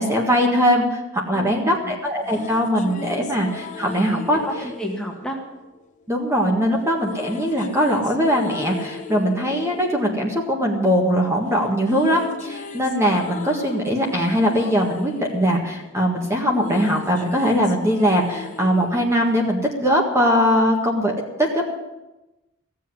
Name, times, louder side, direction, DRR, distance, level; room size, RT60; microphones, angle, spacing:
voice 1, 0.0-4.4 6.1-21.7, equal, 15° right, 0 dB, 1.7 m, -21 dB
voice 2, 1.3-1.7 4.4-5.4, equal, 5° left, 0 dB, 1.7 m, -30 dB
sound 1, 2.0-6.2 7.0-11.2 11.5-20.0, left 3 dB, 35° left, 1.0 m, -38 dB
15.5 x 7.6 x 9.7 m, 1.0 s
head